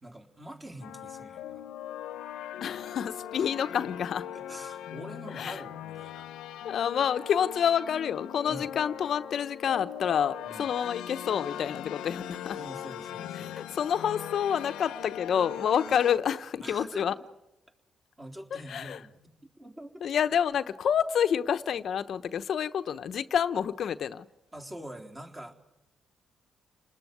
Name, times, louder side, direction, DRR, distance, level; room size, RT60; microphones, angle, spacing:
voice 1, 0.0-1.7 3.4-3.8 4.3-6.3 8.5-8.7 10.4-10.7 12.5-13.6 16.6-17.2 18.2-20.0 24.5-25.5, right 1 dB, 20° right, 3.8 m, -45 dB
sound 1, 0.8-16.2, left 11 dB, 90° left, 0.9 m, -40 dB
voice 2, 2.6-4.3 5.3-5.6 6.6-12.6 13.3-17.1 18.5-19.0 20.0-24.3, left 8 dB, 60° left, 0.9 m, -28 dB
29.5 x 20.0 x 9.5 m
cardioid pair, 90°, 0 cm